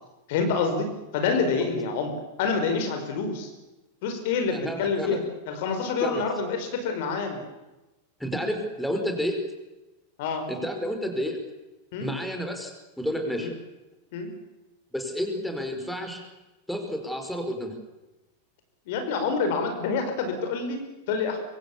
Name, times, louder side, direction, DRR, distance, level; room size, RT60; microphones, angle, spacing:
voice 1, 0.3-3.5 4.0-7.4 10.2-10.5 11.9-12.1 13.4-13.5 14.1-14.3 18.9-21.4, left 4 dB, 50° left, 6 dB, 5.0 m, -27 dB
voice 2, 4.5-5.2 6.0-6.2 8.2-9.4 10.5-11.4 12.0-13.5 14.9-16.2 16.7-17.7, equal, ahead, 4 dB, 4.9 m, -30 dB
26.0 x 24.5 x 7.3 m, 1.1 s
figure-of-eight pair, 90°, 0 cm